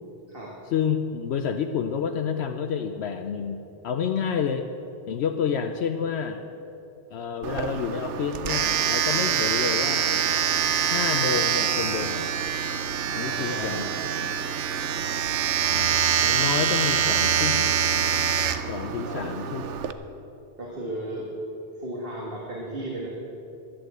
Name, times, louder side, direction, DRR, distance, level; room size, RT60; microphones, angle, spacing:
voice 1, 0.7-3.6 3.8-4.7 5.1-6.4 7.1-10.3 10.8-12.3 13.1-13.8 14.2-14.4 15.7-15.9 16.2-17.7 18.7-19.6, left 7 dB, 70° left, 6 dB, 0.9 m, -29 dB
Domestic sounds home sounds, 7.4-19.9, right 8 dB, 85° right, 1.0 m, -25 dB
voice 2, 13.2-13.8 19.0-19.3 20.6-21.3 21.8-23.1, right 1 dB, 55° right, -4 dB, 2.0 m, -35 dB
11.5 x 11.5 x 7.7 m, 2.9 s
omnidirectional pair, 1.2 m